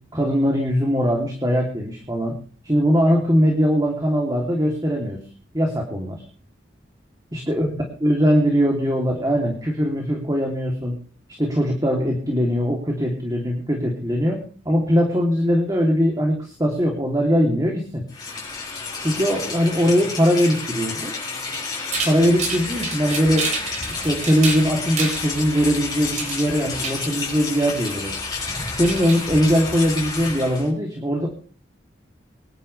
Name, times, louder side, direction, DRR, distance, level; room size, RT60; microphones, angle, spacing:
voice 1, 0.1-2.3 2.6-5.2 5.5-6.2 7.3-11.0 11.4-14.4 14.6-18.0 19.0-21.1 22.0-23.5 23.8-28.2 28.8-31.3, equal, 20° right, 0 dB, 3.0 m, -21 dB
Rain, 18.1-30.7, left 4 dB, 20° left, 7.4 m, -31 dB
sound 1, 21.9-30.1, right 3 dB, 40° right, 4.4 m, -31 dB
25.0 x 11.5 x 3.3 m, 0.43 s
head